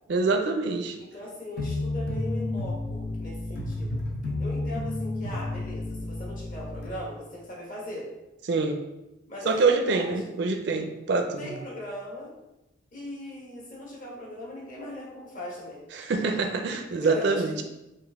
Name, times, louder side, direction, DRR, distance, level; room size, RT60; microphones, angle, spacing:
voice 1, 0.1-1.0 8.5-8.8 9.5-11.5 15.9-17.6, right 3 dB, 55° right, 5 dB, 0.4 m, -25 dB
voice 2, 1.0-3.9 4.4-8.1 9.3-10.3 11.4-12.3 12.9-15.8 16.9-17.5, left 1 dB, 45° left, -4 dB, 1.3 m, -39 dB
sound 1, 1.6-6.9, left 2 dB, 60° left, 0.9 m, -31 dB
5.5 x 2.5 x 3.5 m, 0.97 s
head